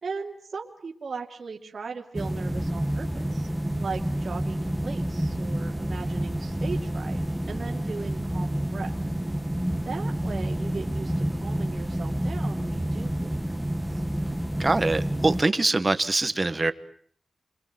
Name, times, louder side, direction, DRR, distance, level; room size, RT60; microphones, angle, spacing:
voice 1, 0.0-7.2 7.5-8.9 9.8-13.5 13.9-14.0, right 5 dB, 60° right, 0 dB, 2.7 m, -38 dB
sound 1, 2.1-15.4, right 1 dB, 5° right, 1.2 m, -29 dB
voice 2, 14.6-16.7, right 2 dB, 25° right, 11 dB, 1.4 m, -23 dB
29.0 x 23.5 x 7.7 m, 0.62 s
wide cardioid pair, 140°, 0 cm